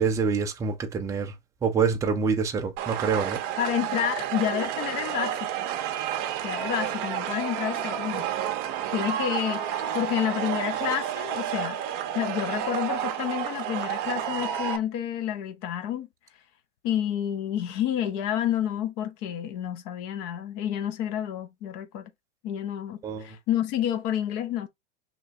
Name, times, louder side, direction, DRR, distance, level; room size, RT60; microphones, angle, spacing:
voice 1, 0.0-1.3 1.6-3.4 23.0-23.3, right 5 dB, 10° right, 0.3 m, -26 dB
sound 1, 2.8-14.8, right 10 dB, 45° right, 0.6 m, -30 dB
voice 2, 3.6-5.6 6.4-8.3 8.9-16.1 16.8-22.0 22.4-24.7, left 10 dB, 40° left, 0.6 m, -29 dB
3.0 x 2.2 x 4.1 m
hypercardioid pair, 115°, 36 cm